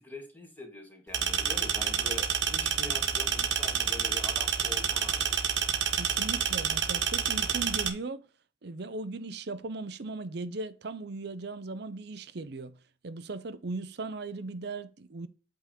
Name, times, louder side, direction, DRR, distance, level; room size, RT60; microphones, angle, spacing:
voice 1, 0.0-5.4, left 2 dB, 10° left, 1.7 m, -44 dB
sound 1, 1.1-7.9, right 8 dB, 75° right, 1.4 m, -29 dB
voice 2, 6.0-8.3 8.6-12.8 13.0-15.3, right 3 dB, 60° right, 0.6 m, -38 dB
8.3 x 3.8 x 4.9 m
head